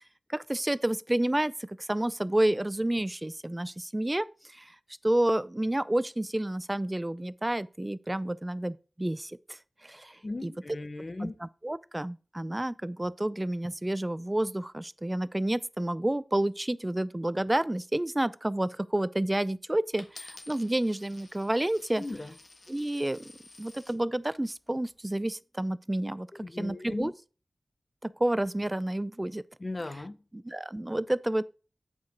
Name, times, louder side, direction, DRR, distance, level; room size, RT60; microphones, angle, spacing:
voice 1, 0.3-4.8 5.0-10.5 11.2-22.1 22.7-23.3 23.6-26.3 26.6-27.1 28.0-29.4 30.3-31.4, right 1 dB, 20° right, 0.4 m, -30 dB
voice 2, 10.2-11.4 22.0-22.3 26.4-27.1 29.6-30.2, left 2 dB, 40° left, 0.7 m, -37 dB
Coin (dropping), 20.0-24.0 24.7-25.1, left 3 dB, 65° left, 1.3 m, -52 dB
8.3 x 4.9 x 4.5 m
wide cardioid pair, 75°, 0 cm